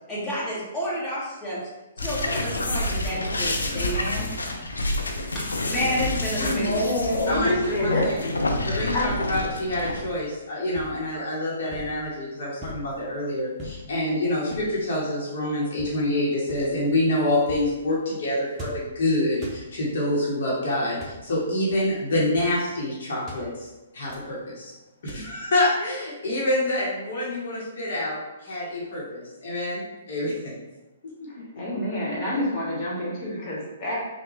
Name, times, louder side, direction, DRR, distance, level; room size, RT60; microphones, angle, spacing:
voice 1, 0.1-1.6 2.0-4.3 5.2-6.9, equal, 15° left, -9 dB, 1.3 m, -30 dB
sound 1, 2.0-10.0, left 1 dB, 90° left, 0.4 m, -28 dB
voice 2, 6.3-8.3 8.9-9.1 31.3-34.0, left 1 dB, 35° left, -4 dB, 1.3 m, -27 dB
voice 3, 7.3-8.3 8.6-24.7 25.0-30.5, left 1 dB, 65° left, -5 dB, 1.0 m, -27 dB
sound 2, 10.0-10.3 10.7-11.0 11.7-12.0 12.6-12.9 13.6-13.9 14.5-14.8 15.7-16.1 16.5-16.8 17.4-17.8 18.5-19.0 19.3-19.7 20.8-21.2 21.7-21.9 22.2-22.6 23.3-23.5 24.1-24.4 25.1-25.4, equal, 20° right, 0.7 m, -40 dB
3.5 x 2.2 x 3.2 m, 1.1 s
hypercardioid pair, 130°, 0 cm